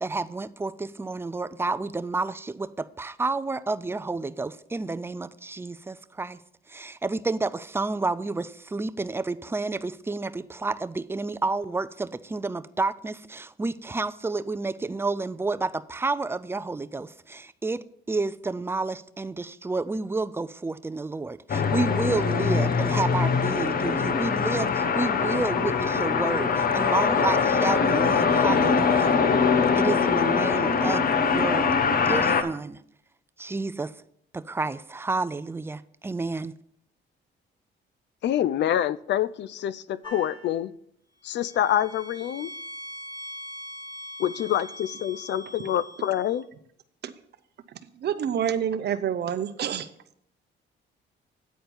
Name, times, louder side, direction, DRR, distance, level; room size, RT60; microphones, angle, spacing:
voice 1, 0.0-6.4 6.7-29.2 29.8-31.7 32.0-32.8 33.4-33.9 34.3-36.5, right 3 dB, 10° right, 0.4 m, -30 dB
sound 1, 21.5-32.4, left 5 dB, 45° left, 0.8 m, -23 dB
voice 2, 38.2-40.7 41.2-42.5 44.2-46.4, left 11 dB, 65° left, 0.4 m, -26 dB
sound 2, 40.0-40.6 41.3-46.4, left 1 dB, 25° left, 1.9 m, -42 dB
voice 3, 48.0-49.9, right 9 dB, 55° right, 0.7 m, -27 dB
9.3 x 4.4 x 6.8 m
cardioid pair, 90°, 20 cm